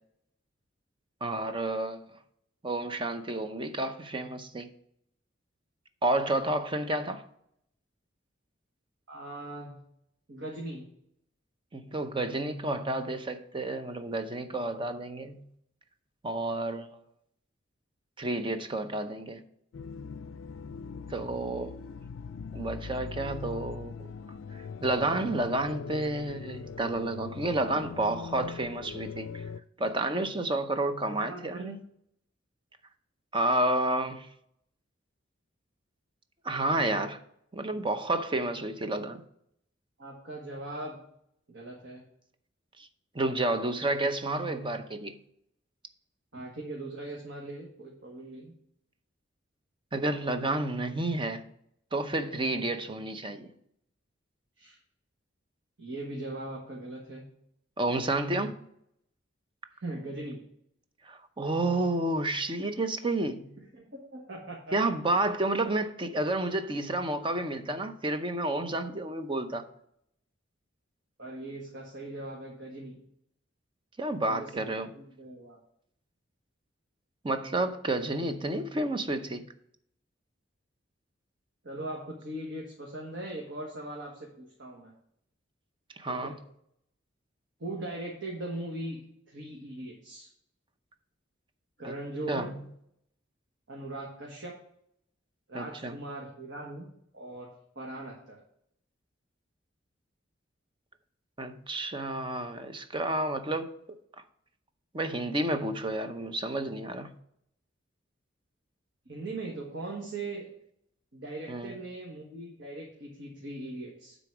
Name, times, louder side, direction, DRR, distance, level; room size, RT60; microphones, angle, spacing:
voice 1, 1.2-2.0 2.6-4.7 6.0-7.2 11.7-15.5 16.2-16.9 18.2-19.4 21.1-21.7 22.5-24.1 24.8-29.4 29.8-31.8 33.3-34.3 36.4-37.2 37.5-39.2 42.8-42.9 43.1-45.2 49.9-51.4 51.9-53.5 57.8-58.5 61.1-63.6 64.7-69.7 74.0-74.9 77.2-79.5 86.0-86.3 91.8-91.9 92.3-92.5 95.5-96.0 101.4-103.7 104.9-107.1 111.5-111.8, right 2 dB, 25° right, 0.7 m, -30 dB
voice 2, 9.1-9.8 10.3-10.9 31.0-31.7 40.0-41.0 41.5-42.0 46.3-48.5 54.6-54.8 55.8-57.3 58.4-58.5 59.8-60.4 63.7-64.7 71.2-73.0 74.2-74.6 74.9-75.6 81.6-84.9 86.1-86.4 87.6-90.3 91.8-92.5 93.7-94.6 95.5-98.4 109.0-110.5 111.1-114.2, right 2 dB, 65° right, 1.5 m, -40 dB
sound 1, 19.7-29.6, left 5 dB, 80° left, 0.4 m, -41 dB
9.5 x 4.1 x 5.9 m
head